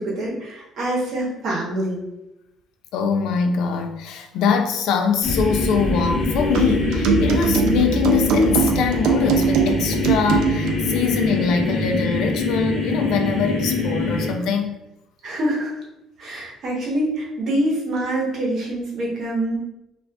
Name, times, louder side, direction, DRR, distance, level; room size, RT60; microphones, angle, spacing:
voice 1, 0.0-2.0 15.2-15.8 16.2-19.6, right 1 dB, 45° right, -3 dB, 0.9 m, -25 dB
voice 2, 2.9-14.8, left 6 dB, 70° left, 5 dB, 0.4 m, -23 dB
sound 1, 5.2-14.3, left 2 dB, 35° left, 0.7 m, -24 dB
sound 2, 6.5-10.8, right 4 dB, 80° right, 0.3 m, -21 dB
2.4 x 2.3 x 3.4 m, 0.91 s
cardioid pair, 155°, 0 cm